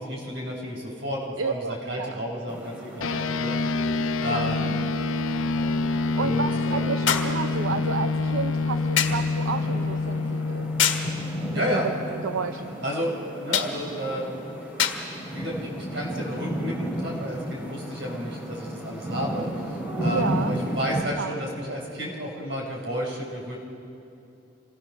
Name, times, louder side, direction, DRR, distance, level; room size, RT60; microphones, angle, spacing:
voice 1, 0.0-3.9 4.2-4.7 6.2-6.9 11.5-11.9 12.8-14.3 14.8-23.6, equal, 60° right, -1 dB, 4.7 m, -32 dB
voice 2, 1.4-2.2 4.3-4.8 6.2-10.7 11.5-12.8 20.1-20.5 21.2-21.4, right 5 dB, 80° right, 8 dB, 0.7 m, -31 dB
sound 1, 2.5-21.0, right 1 dB, 10° right, 2.9 m, -35 dB
sound 2, 3.0-12.7, left 3 dB, 85° left, 0.8 m, -27 dB
sound 3, 7.1-7.4 9.0-9.3 10.8-11.1 13.5-13.8 14.8-15.1 16.1-16.3, left 8 dB, 65° left, 1.6 m, -24 dB
26.5 x 19.0 x 6.6 m, 2.8 s
head